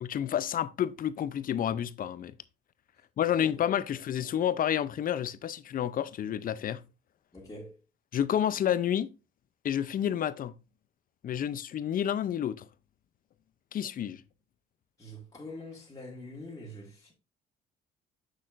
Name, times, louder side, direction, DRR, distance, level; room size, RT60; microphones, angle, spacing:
voice 1, 0.0-2.3 3.2-6.8 8.1-9.1 9.6-10.5 11.2-12.7 13.7-14.2, left 10 dB, 45° left, 0.5 m, -29 dB
voice 2, 7.3-7.8 15.0-17.1, left 1 dB, 15° left, 1.9 m, -44 dB
6.5 x 6.2 x 2.5 m
supercardioid pair, 80°, 20 cm